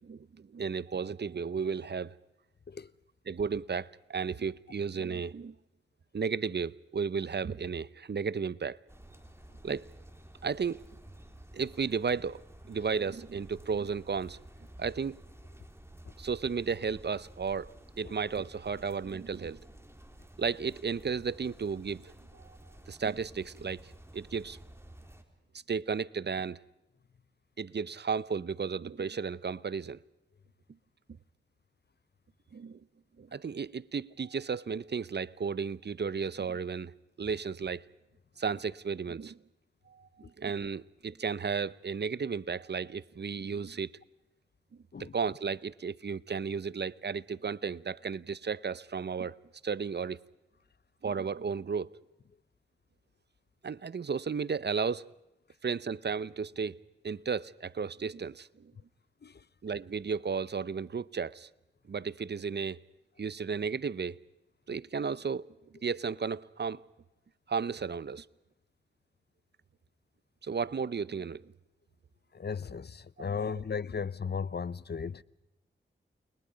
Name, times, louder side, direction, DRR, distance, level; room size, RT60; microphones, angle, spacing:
voice 1, 0.0-2.1 3.3-5.5 6.1-8.8 9.6-9.9 10.4-10.8 11.5-12.4 12.7-14.4 14.8-15.2 16.2-19.6 20.4-22.6 22.9-24.6 25.7-26.6 27.6-30.0 32.5-32.8 33.2-36.9 37.2-37.8 38.4-39.4 39.9-43.9 45.0-49.4 49.6-50.2 51.0-51.9 53.6-55.1 55.6-56.8 57.0-58.7 59.6-61.5 61.9-62.8 63.2-64.2 64.7-65.5 65.8-66.8 67.5-68.3 70.4-71.5 73.2-73.5, right 5 dB, 55° right, 0.7 m, -34 dB
sound 1, 8.9-25.2, right 1 dB, 10° right, 3.8 m, -52 dB
voice 2, 72.3-75.2, left 6 dB, 50° left, 0.7 m, -36 dB
29.5 x 21.5 x 5.1 m
cardioid pair, 40°, 21 cm